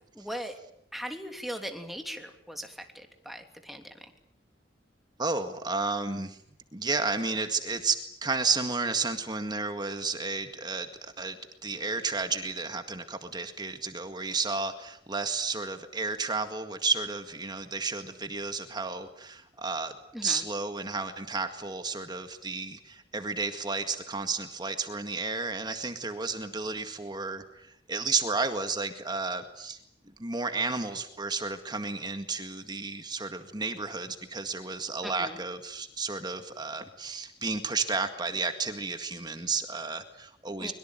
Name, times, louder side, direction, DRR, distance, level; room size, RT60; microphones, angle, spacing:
voice 1, 0.1-0.6 0.9-4.1 20.1-20.4 35.0-35.4 40.6-40.7, equal, ahead, 5 dB, 3.1 m, -39 dB
voice 2, 5.2-6.4 6.7-8.0 8.2-11.4 11.6-19.9 20.2-29.8 30.2-40.7, right 4 dB, 25° right, 7 dB, 1.9 m, -32 dB
24.0 x 23.0 x 9.1 m, 0.70 s
head